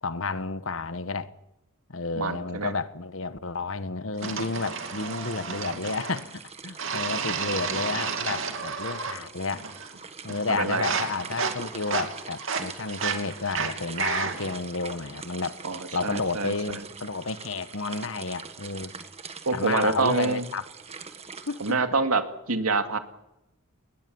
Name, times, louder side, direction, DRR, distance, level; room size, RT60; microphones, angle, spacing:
voice 1, 0.0-1.3 1.9-9.6 10.2-15.6 15.9-18.9 19.5-20.6 21.5-21.6, left 3 dB, 60° left, 1.2 m, -31 dB
voice 2, 2.2-2.7 10.5-10.9 15.6-16.5 19.5-20.4 21.6-22.2 22.5-23.0, right 3 dB, 80° right, 2.4 m, -26 dB
sound 1, 4.2-21.7, right 5 dB, 30° right, 1.6 m, -43 dB
sound 2, 4.2-6.3 6.8-9.2 9.5-10.0 10.3-14.6, right 5 dB, 60° right, 2.8 m, -32 dB
21.0 x 20.5 x 7.1 m
head